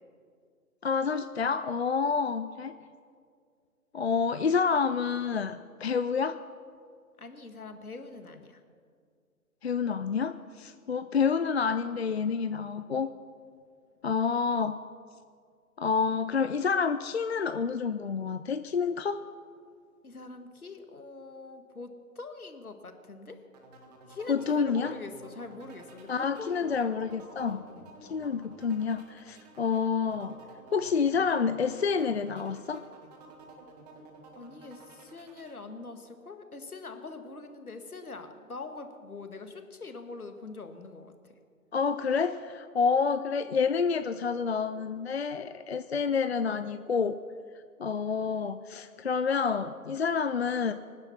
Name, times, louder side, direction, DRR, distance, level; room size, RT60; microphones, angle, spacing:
voice 1, 0.8-2.7 3.9-6.4 9.6-13.1 14.0-14.8 15.8-19.2 24.3-24.9 26.1-27.6 28.0-30.4 30.7-32.8 41.7-47.2 47.8-50.7, left 5 dB, 45° left, 11 dB, 0.5 m, -28 dB
voice 2, 7.2-8.6 20.0-23.4 24.1-26.8 27.0-27.2 27.4-27.9 34.3-41.3, left 3 dB, 75° left, 7 dB, 1.9 m, -43 dB
sound 1, 23.5-35.6, right 3 dB, 25° right, 1.7 m, -52 dB
24.5 x 9.8 x 5.7 m, 2.1 s
figure-of-eight pair, 135°, 44 cm